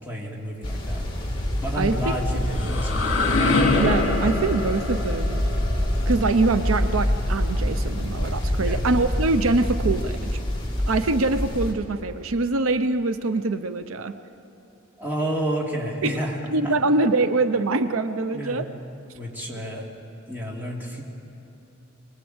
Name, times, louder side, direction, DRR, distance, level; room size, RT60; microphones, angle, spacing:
voice 1, 0.0-1.0 1.6-3.3 8.6-8.8 15.0-16.4 16.6-16.7 18.3-18.6 19.1-19.9 20.3-21.0, equal, 10° right, -3 dB, 2.9 m, -30 dB
sound 1, 0.6-11.7, left 1 dB, 20° left, 2.6 m, -26 dB
voice 2, 1.8-2.8 3.8-5.4 6.1-10.4 10.9-14.1 16.0-16.2 16.5-18.7 19.5-19.9, right 3 dB, 85° right, 10 dB, 0.7 m, -24 dB
sound 2, 2.4-8.0, left 3 dB, 55° left, 2.5 m, -26 dB
23.5 x 20.0 x 8.0 m, 3.0 s
head